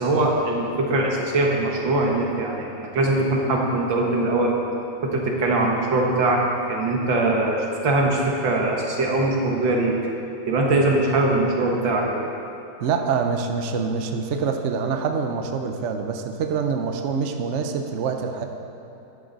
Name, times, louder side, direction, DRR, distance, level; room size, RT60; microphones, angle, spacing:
voice 1, 0.0-4.5 5.0-9.9 10.5-12.2, right 2 dB, 80° right, 0 dB, 2.1 m, -22 dB
voice 2, 12.8-18.4, right 5 dB, 60° right, 5 dB, 0.8 m, -25 dB
12.5 x 10.0 x 4.1 m, 2.8 s
omnidirectional pair, 2.0 m